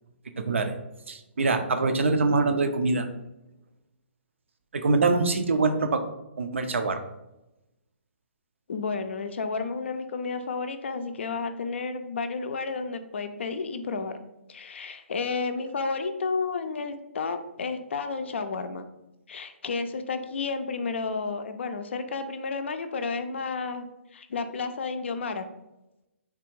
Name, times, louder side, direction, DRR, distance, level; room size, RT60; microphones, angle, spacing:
voice 1, 0.4-0.7 1.1-3.1 4.7-6.0 6.4-7.0, right 3 dB, 70° right, 7 dB, 0.4 m, -24 dB
voice 2, 8.7-14.2 14.5-18.8 19.3-23.9 24.1-25.5, left 4 dB, 65° left, 9 dB, 0.4 m, -31 dB
3.4 x 2.4 x 3.0 m, 0.94 s
figure-of-eight pair, 130°, 7 cm